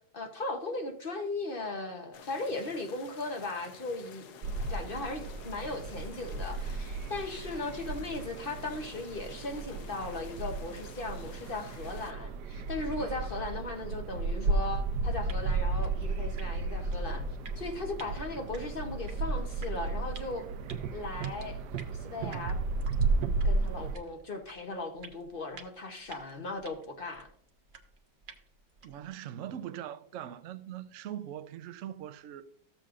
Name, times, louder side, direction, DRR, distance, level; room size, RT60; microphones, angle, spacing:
voice 1, 0.1-17.2 17.6-20.4 20.9-21.6 21.9-22.6 23.4-27.3, left 2 dB, 45° left, 0.8 m, -37 dB
sound 1, 2.1-12.1, left 7 dB, 65° left, 1.1 m, -52 dB
sound 2, 4.4-24.0, right 3 dB, 70° right, 1.1 m, -34 dB
sound 3, 15.2-29.1, right 5 dB, 45° right, 0.6 m, -54 dB
voice 2, 28.8-32.4, right 11 dB, 90° right, 0.6 m, -41 dB
14.0 x 7.6 x 2.5 m
omnidirectional pair, 2.0 m